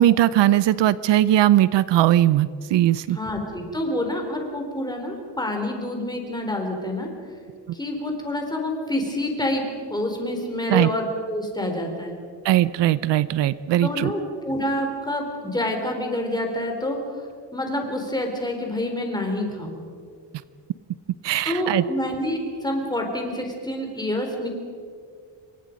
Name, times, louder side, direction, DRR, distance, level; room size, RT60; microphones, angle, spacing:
voice 1, 0.0-3.2 10.7-10.9 12.4-14.1 21.2-21.8, right 13 dB, 70° right, 17 dB, 0.7 m, -19 dB
voice 2, 3.1-7.1 7.7-12.2 13.8-17.0 17.5-19.8 21.4-24.5, left 1 dB, 10° left, 2 dB, 3.7 m, -27 dB
27.0 x 23.0 x 5.3 m, 2.2 s
cardioid pair, 155°, 44 cm